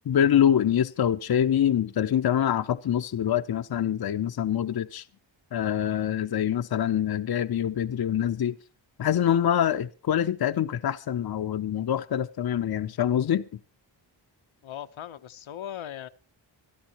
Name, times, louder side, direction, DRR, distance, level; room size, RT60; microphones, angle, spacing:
voice 1, 0.1-5.0 5.5-8.5 9.0-13.5, left 10 dB, 55° left, 0.7 m, -25 dB
voice 2, 14.6-16.1, left 10 dB, 85° left, 0.9 m, -38 dB
25.0 x 13.0 x 3.0 m
wide cardioid pair, 100°, 46 cm